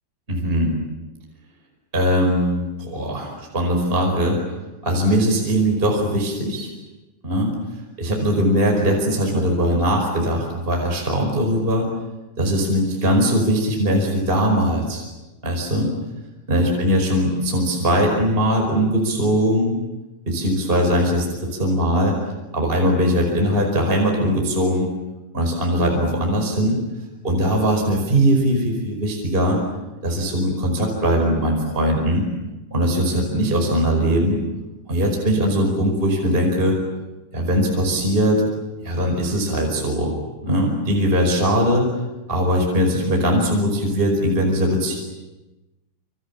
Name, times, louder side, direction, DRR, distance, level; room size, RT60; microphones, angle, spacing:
voice 1, 0.3-0.8 1.9-4.4 4.8-6.7 7.2-7.5 8.0-11.9 12.4-15.0 15.4-15.9 16.5-19.7 20.3-22.1 22.5-24.9 25.3-26.8 27.2-29.6 30.0-32.3 32.7-34.4 34.9-36.8 37.3-38.4 38.8-40.1 40.4-41.9 42.3-45.0, equal, 10° right, 1 dB, 4.9 m, -20 dB
28.0 x 27.0 x 7.3 m, 1.1 s
omnidirectional pair, 5.3 m